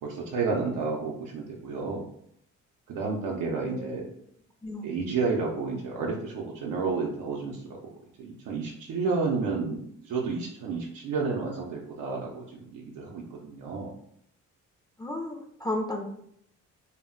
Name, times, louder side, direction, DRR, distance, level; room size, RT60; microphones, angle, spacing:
voice 1, 0.0-2.1 2.9-4.0 4.8-7.6 8.2-13.9, right 4 dB, 85° right, -2 dB, 0.5 m, -31 dB
voice 2, 3.6-4.0 4.6-4.9 15.0-16.1, left 1 dB, 15° left, -1 dB, 0.4 m, -33 dB
2.1 x 2.1 x 3.6 m, 0.69 s
cardioid pair, 90°, 30 cm